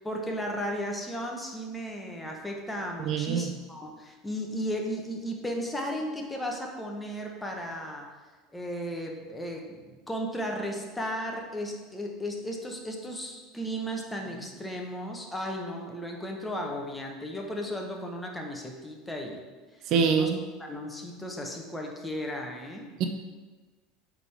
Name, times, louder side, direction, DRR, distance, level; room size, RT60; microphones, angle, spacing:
voice 1, 0.0-8.1 8.5-19.4 20.1-20.3 20.6-22.9, equal, 10° left, 1 dB, 1.2 m, -35 dB
voice 2, 3.0-3.5 19.9-20.4 23.0-23.1, right 6 dB, 55° right, 6 dB, 0.5 m, -24 dB
8.1 x 3.7 x 3.5 m, 1.3 s
hypercardioid pair, 85°, 0 cm